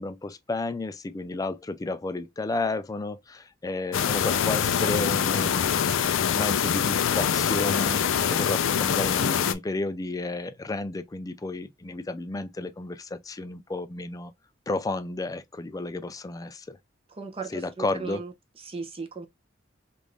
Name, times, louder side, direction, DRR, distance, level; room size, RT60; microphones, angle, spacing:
voice 1, 0.0-5.6 6.2-8.0 8.3-14.3 14.7-16.8 17.5-18.2, left 2 dB, 20° left, 0.4 m, -32 dB
sound 1, 3.9-9.5, left 8 dB, 85° left, 0.4 m, -24 dB
voice 2, 17.2-18.3 18.7-19.3, right 4 dB, 30° right, 0.7 m, -37 dB
3.5 x 2.5 x 3.1 m
head